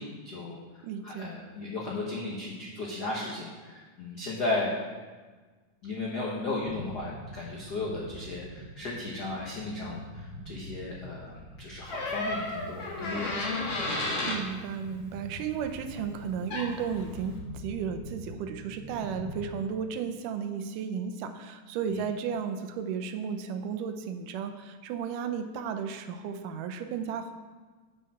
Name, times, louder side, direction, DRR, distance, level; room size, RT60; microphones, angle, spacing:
voice 1, 0.0-4.8 5.8-13.5 21.9-22.1, left 2 dB, 80° left, -4 dB, 0.9 m, -35 dB
voice 2, 0.8-1.3 14.2-27.3, right 7 dB, 85° right, 8 dB, 2.3 m, -34 dB
sound 1, 6.6-19.5, equal, 20° right, 1.0 m, -45 dB
Door, 11.9-14.4 16.2-16.3 16.5-16.9, left 2 dB, 50° left, 2.3 m, -32 dB
8.0 x 6.3 x 5.9 m, 1.4 s
omnidirectional pair, 3.7 m